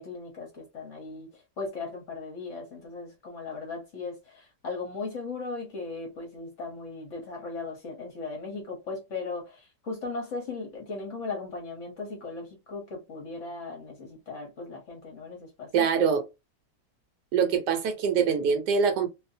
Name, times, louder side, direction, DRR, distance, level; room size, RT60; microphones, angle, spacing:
voice 1, 0.0-16.1, left 3 dB, 55° left, 1.0 m, -37 dB
voice 2, 15.7-16.2 17.3-19.1, right 6 dB, 75° right, 1.2 m, -24 dB
2.7 x 2.4 x 2.5 m
omnidirectional pair, 1.9 m